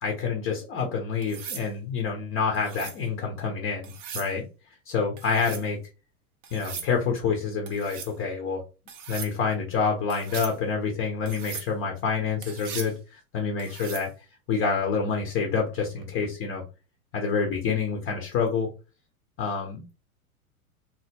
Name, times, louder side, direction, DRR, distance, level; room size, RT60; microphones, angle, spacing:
voice 1, 0.0-4.4 4.9-5.8 6.5-8.6 9.1-14.1 14.5-16.6 17.1-18.7 19.4-19.9, left 5 dB, 30° left, 2 dB, 0.8 m, -27 dB
sound 1, 1.2-1.7 2.5-3.0 3.8-4.3 5.2-5.7 6.4-6.9 7.7-8.1 8.9-9.3 10.1-10.6 11.3-11.7 12.4-12.9 13.6-14.1 16.0-16.3, right 7 dB, 20° right, 0.3 m, -39 dB
2.9 x 2.0 x 3.5 m, 0.31 s
hypercardioid pair, 110°, 44 cm